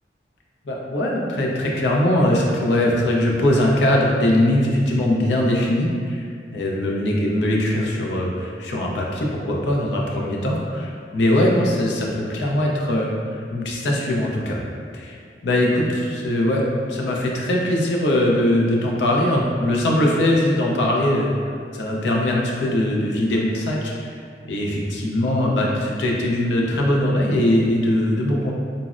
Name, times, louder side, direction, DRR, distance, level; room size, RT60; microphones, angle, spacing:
voice 1, 0.6-6.2 6.5-14.6 14.9-15.2 15.4-21.3 21.7-24.1 24.4-28.5, left 1 dB, 75° left, -2 dB, 0.5 m, -21 dB
3.9 x 2.0 x 2.4 m, 2.2 s
head